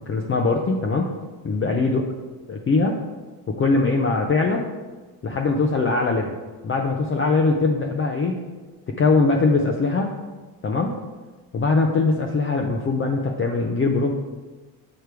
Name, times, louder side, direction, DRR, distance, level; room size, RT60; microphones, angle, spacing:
voice 1, 0.1-1.1 1.4-2.0 2.5-3.0 3.5-4.7 5.2-6.4 6.6-8.4 8.9-10.1 10.6-11.0 11.5-14.1, left 3 dB, 25° left, 1 dB, 0.5 m, -21 dB
6.8 x 3.3 x 4.5 m, 1.3 s
supercardioid pair, 80°, 49 cm